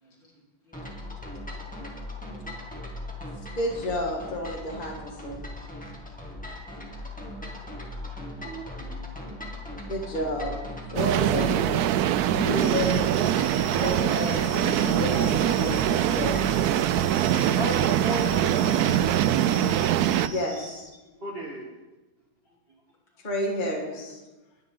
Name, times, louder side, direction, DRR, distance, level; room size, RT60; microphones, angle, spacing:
voice 1, 0.6-1.3 2.1-2.4 5.8-6.1 6.8-7.4 9.8-10.0 12.2-12.8 22.5-22.6, equal, 65° left, -3 dB, 4.0 m, -38 dB
sound 1, 0.7-16.6, left 1 dB, 5° left, 2.0 m, -39 dB
voice 2, 3.6-5.4 9.9-10.6 10.9-11.9 12.5-13.1 13.7-16.4 20.3-20.9 23.2-24.2, left 1 dB, 25° left, -1 dB, 1.8 m, -31 dB
voice 3, 8.1-9.6 17.3-19.3 21.2-21.7, right 1 dB, 30° right, -2 dB, 1.9 m, -36 dB
sound 2, 11.0-20.3, right 11 dB, 85° right, 0.8 m, -23 dB
sound 3, 12.6-20.8, right 2 dB, 55° right, 3.3 m, -41 dB
20.5 x 10.0 x 3.8 m, 1.1 s
omnidirectional pair, 2.2 m